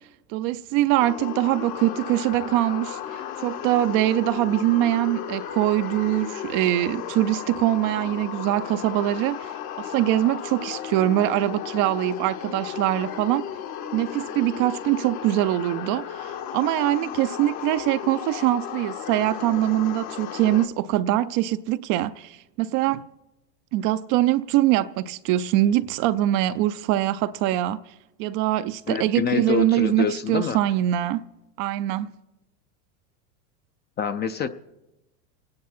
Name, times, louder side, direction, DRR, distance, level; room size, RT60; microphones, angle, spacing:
voice 1, 0.3-13.5 13.9-23.0 23.7-27.8 28.2-31.2 31.6-32.1, right 14 dB, 40° right, 0.5 m, -23 dB
sound 1, 1.0-20.7, left 9 dB, 45° left, 1.1 m, -34 dB
voice 2, 28.9-30.6 34.0-34.5, left 6 dB, 20° left, 0.5 m, -26 dB
27.5 x 9.6 x 4.3 m
hypercardioid pair, 105°, 49 cm